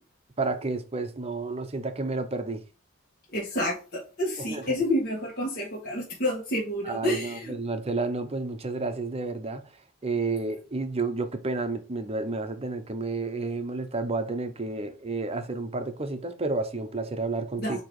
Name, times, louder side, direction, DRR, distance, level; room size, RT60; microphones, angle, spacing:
voice 1, 0.4-2.6 4.4-4.8 6.8-9.7 10.0-17.8, right 3 dB, 30° right, 0.7 m, -31 dB
voice 2, 3.3-7.5 17.6-17.8, left 1 dB, 45° left, 1.8 m, -29 dB
8.8 x 3.0 x 4.8 m
head